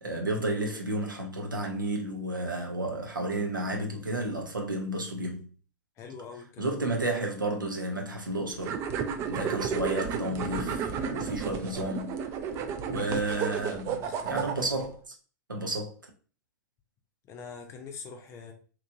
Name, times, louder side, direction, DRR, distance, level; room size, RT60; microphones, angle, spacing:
voice 1, 0.0-5.5 6.6-8.8 9.2-12.2 12.9-15.1 15.5-16.0, right 2 dB, 80° right, 0.7 m, -32 dB
voice 2, 6.0-6.8 13.0-13.2 14.0-14.6 17.3-18.5, left 6 dB, 25° left, 0.5 m, -44 dB
sound 1, 8.6-14.9, right 7 dB, 25° right, 0.3 m, -33 dB
2.9 x 2.6 x 2.6 m
figure-of-eight pair, 100°, 11 cm